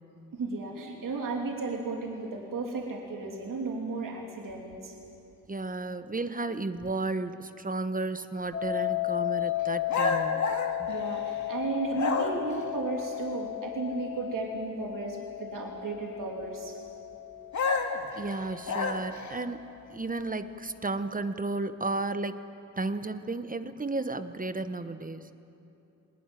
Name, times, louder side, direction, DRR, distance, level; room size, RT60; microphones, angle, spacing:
voice 1, 0.3-4.9 10.9-16.7, right 3 dB, 70° right, 0 dB, 3.0 m, -34 dB
voice 2, 5.5-10.5 10.8-10.9 18.2-19.6 19.9-22.4 22.8-25.3, right 3 dB, 25° right, 10 dB, 1.1 m, -33 dB
sound 1, 8.5-19.4, left 16 dB, 40° left, 4.7 m, -35 dB
sound 2, 9.9-11.5 11.9-12.6 17.5-19.3, left 4 dB, 60° left, 2.2 m, -30 dB
20.0 x 20.0 x 9.2 m, 2.8 s
cardioid pair, 65°, 33 cm